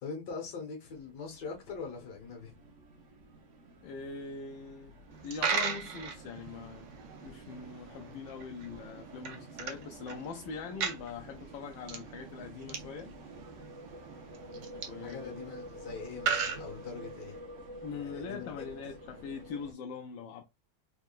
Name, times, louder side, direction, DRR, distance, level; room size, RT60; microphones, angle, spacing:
voice 1, 0.0-2.6 14.5-14.7 15.0-17.4 18.0-18.8, left 5 dB, 60° left, 1.9 m, -42 dB
sound 1, 0.8-19.7, equal, 50° right, 1.0 m, -50 dB
voice 2, 3.8-6.9 7.2-13.1 14.7-15.5 17.8-20.4, left 5 dB, 80° left, 1.3 m, -42 dB
Coin (dropping), 5.1-17.4, right 6 dB, 70° right, 1.5 m, -39 dB
4.3 x 3.5 x 2.4 m
omnidirectional pair, 2.1 m